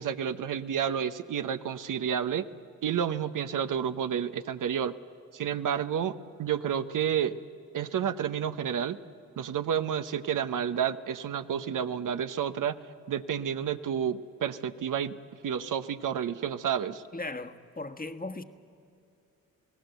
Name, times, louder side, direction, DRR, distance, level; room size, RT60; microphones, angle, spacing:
voice 1, 0.0-2.5 2.8-4.9 5.3-7.4 7.7-9.0 9.4-12.8 13.1-15.2 15.4-17.0, right 8 dB, 70° right, 0.8 m, -30 dB
voice 2, 17.1-18.4, left 2 dB, 25° left, 1.4 m, -37 dB
27.5 x 17.5 x 8.0 m
supercardioid pair, 45°, 33 cm